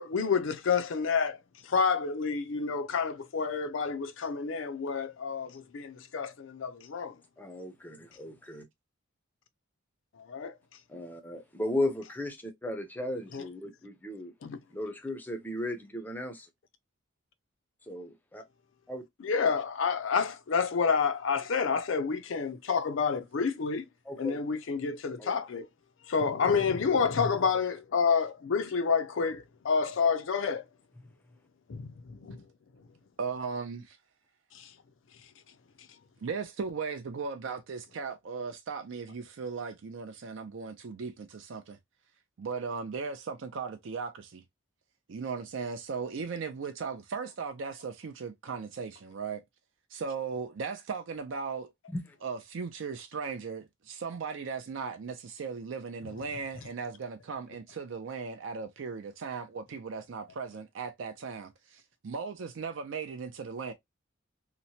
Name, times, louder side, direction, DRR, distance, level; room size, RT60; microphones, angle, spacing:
voice 1, 0.0-1.4 1.6-7.2 10.2-10.5 13.3-13.5 14.4-14.6 19.2-23.8 24.2-25.7 26.1-30.6 31.7-32.4 34.5-34.7, left 5 dB, 65° left, 0.4 m, -29 dB
voice 2, 7.4-8.6 10.9-14.3 14.7-16.5 17.9-18.4 18.9-19.0 24.1-24.4 25.2-25.3 51.9-52.0, left 1 dB, 10° left, 0.5 m, -35 dB
voice 3, 33.2-34.0 36.2-41.8 42.4-44.4 45.1-49.4 49.9-51.7 52.2-63.7, right 5 dB, 65° right, 0.4 m, -37 dB
2.9 x 2.1 x 2.7 m
head